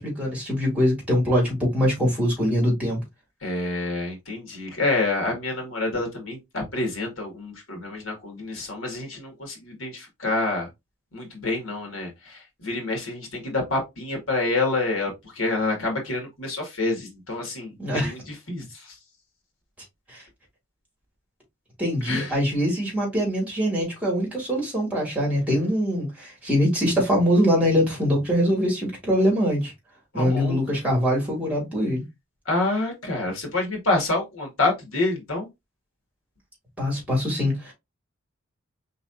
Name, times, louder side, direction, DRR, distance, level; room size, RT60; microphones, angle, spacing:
voice 1, 0.0-3.0 17.8-18.1 20.1-20.2 21.8-29.7 30.1-32.0 36.8-37.7, equal, 5° right, 2.4 m, -23 dB
voice 2, 3.4-10.7 11.1-18.6 22.0-22.4 30.1-30.6 32.5-35.5, left 2 dB, 75° left, 2.0 m, -27 dB
4.7 x 3.9 x 2.6 m
head